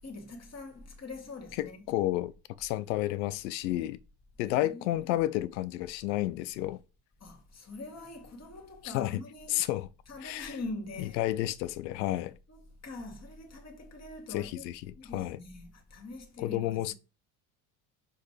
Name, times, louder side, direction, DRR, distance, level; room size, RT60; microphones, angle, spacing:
voice 1, 0.0-1.8 4.5-5.2 7.2-9.7 10.1-11.2 12.5-17.0, left 2 dB, 30° left, 2.4 m, -44 dB
voice 2, 1.6-2.3 2.6-4.0 4.4-6.8 8.8-9.2 9.5-9.9 10.2-10.5 11.2-12.4 14.3-15.4 16.4-17.0, left 15 dB, 85° left, 0.7 m, -31 dB
6.5 x 5.4 x 3.3 m
hypercardioid pair, 75°, 50 cm